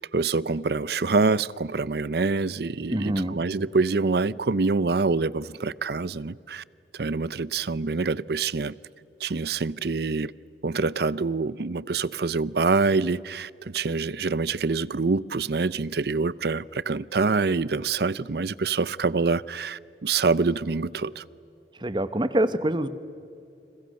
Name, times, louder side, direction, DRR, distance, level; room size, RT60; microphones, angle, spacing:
voice 1, 0.1-6.6 6.9-8.7 9.2-10.3 10.6-21.2, right 4 dB, 65° right, 0.6 m, -26 dB
voice 2, 2.9-3.4 21.8-22.9, right 1 dB, 25° right, 1.0 m, -25 dB
30.0 x 28.5 x 6.5 m
head